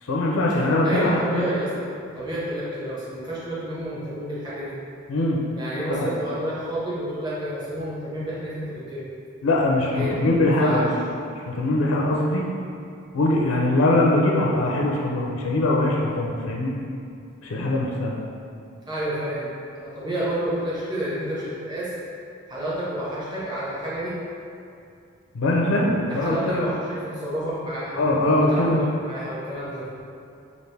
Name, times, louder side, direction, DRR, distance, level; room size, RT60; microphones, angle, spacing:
voice 1, 0.0-1.5 5.1-5.4 5.9-6.1 9.4-10.9 11.5-12.4 13.1-16.8 17.4-18.1 25.3-26.7 28.0-28.8, left 1 dB, 85° left, -3 dB, 0.5 m, -22 dB
voice 2, 0.8-1.7 2.1-4.8 5.6-9.1 9.9-10.1 10.6-10.9 18.9-21.9 22.5-24.2 26.1-28.0 28.4-29.9, right 1 dB, 20° right, -9 dB, 1.0 m, -30 dB
5.3 x 2.5 x 3.3 m, 2.5 s
head